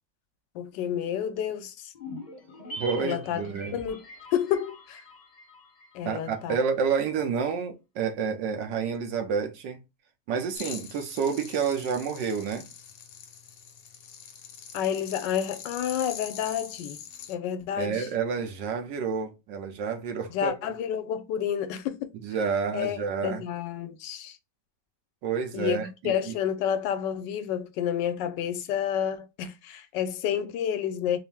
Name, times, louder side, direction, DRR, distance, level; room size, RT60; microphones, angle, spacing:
voice 1, 0.5-1.9 3.0-4.0 4.3-5.0 5.9-6.6 14.7-17.0 17.3-18.1 20.3-22.1 22.7-24.4 25.5-31.2, left 9 dB, 85° left, 1.2 m, -30 dB
sound 1, 1.9-6.4 6.7-6.8, left 1 dB, 40° left, 0.7 m, -43 dB
voice 2, 2.8-3.8 6.0-9.8 10.3-12.7 17.8-20.5 22.2-23.4 25.2-26.3, right 6 dB, 85° right, 1.5 m, -29 dB
sound 2, 10.6-17.4, left 8 dB, 65° left, 1.0 m, -43 dB
4.3 x 2.0 x 3.5 m
omnidirectional pair, 1.9 m